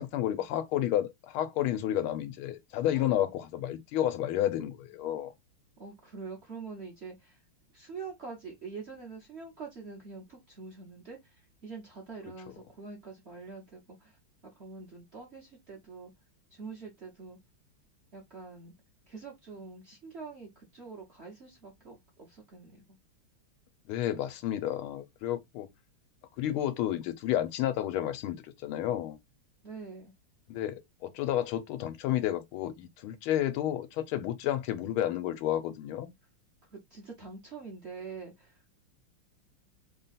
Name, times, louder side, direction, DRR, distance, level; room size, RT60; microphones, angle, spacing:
voice 1, 0.0-5.3 23.9-25.7 26.4-29.2 30.5-36.1, left 12 dB, 85° left, 1.5 m, -31 dB
voice 2, 5.8-7.4 7.7-16.1 16.5-17.4 18.1-18.7 19.1-23.0 29.6-30.1 36.7-38.8, right 4 dB, 45° right, 0.9 m, -45 dB
3.6 x 2.3 x 4.0 m
omnidirectional pair, 2.3 m